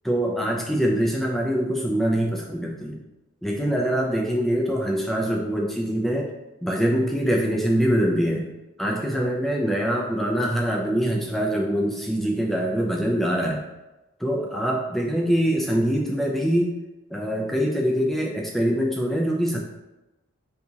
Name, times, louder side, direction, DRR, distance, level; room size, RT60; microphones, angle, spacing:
voice 1, 0.0-3.0 3.4-6.3 6.6-8.5 8.8-13.6 14.2-16.7 17.1-19.6, equal, ahead, -1 dB, 0.3 m, -24 dB
3.5 x 2.8 x 2.7 m, 1.0 s
head